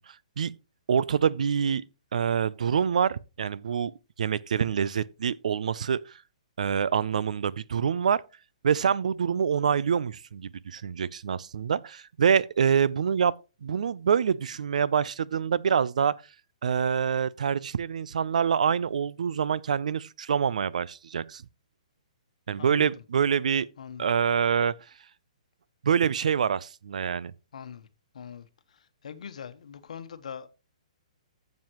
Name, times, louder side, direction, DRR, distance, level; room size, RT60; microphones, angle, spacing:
voice 1, 0.9-1.8 2.1-3.9 4.2-6.0 6.6-8.2 8.6-13.3 13.6-16.1 16.6-21.4 22.5-23.7 24.0-24.7 25.8-27.3, right 7 dB, 75° right, 0.5 m, -26 dB
voice 2, 22.6-22.9 23.8-24.1 27.5-27.9 28.1-30.5, left 7 dB, 70° left, 1.1 m, -42 dB
12.5 x 7.4 x 3.0 m
hypercardioid pair, 165°, 4 cm